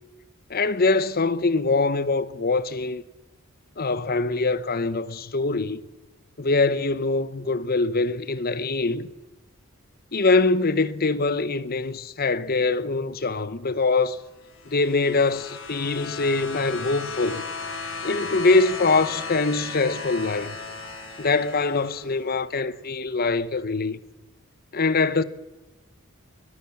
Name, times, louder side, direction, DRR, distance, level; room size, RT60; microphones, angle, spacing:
voice 1, 0.5-3.0 3.8-5.8 6.4-9.1 10.1-14.2 14.7-17.4 18.0-20.6 21.2-24.0 24.7-25.2, left 3 dB, 45° left, 0.9 m, -23 dB
sound 1, 14.4-22.2 23.3-23.4, left 4 dB, 60° left, 5.3 m, -36 dB
22.5 x 20.5 x 7.2 m
head